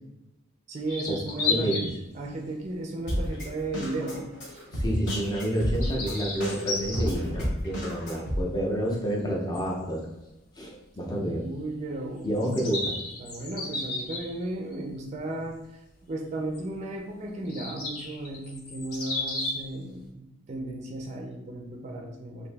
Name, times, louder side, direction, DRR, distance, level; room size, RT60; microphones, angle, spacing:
voice 1, 0.7-1.9 2.1-4.7 11.0-12.8 13.2-22.5, right 2 dB, 30° right, 1 dB, 0.4 m, -35 dB
sound 1, 0.9-2.0 2.5-2.7 3.5-3.7 5.5-7.1 9.5-9.6 9.9-10.0 12.3-14.7 16.5-16.6 17.4-19.6, left 3 dB, 90° left, 0.8 m, -33 dB
voice 2, 1.5-1.9 4.7-10.1 10.6-11.5 12.2-13.0, equal, 20° left, -2 dB, 0.6 m, -29 dB
Drum kit, 3.1-8.4, equal, 55° left, 1.0 m, -31 dB
2.9 x 2.6 x 3.3 m, 0.92 s
head